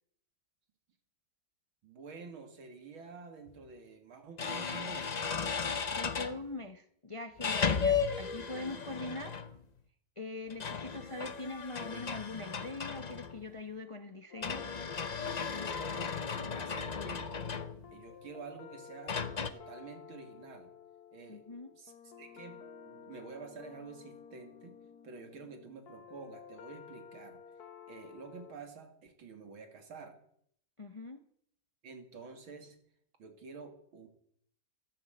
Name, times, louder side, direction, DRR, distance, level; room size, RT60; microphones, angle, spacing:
voice 1, 1.8-5.2 7.7-7.8 15.6-17.3 17.9-19.2 19.5-20.7 21.1-21.4 21.8-24.8 25.0-27.4 27.9-30.2 31.8-32.8 33.2-34.1, right 4 dB, 90° right, 6 dB, 3.1 m, -49 dB
sound 1, 3.5-3.6 4.4-6.4 7.4-9.6 10.5-13.5 14.4-18.0 19.1-19.5, left 6 dB, 85° left, 0.3 m, -35 dB
voice 2, 5.9-9.3 10.2-14.7 21.3-21.7 30.8-31.2, left 2 dB, 25° left, 8 dB, 0.6 m, -42 dB
sound 2, 14.3-28.6, left 7 dB, 55° left, 1.3 m, -53 dB
14.0 x 11.0 x 8.0 m, 0.67 s
omnidirectional pair, 2.2 m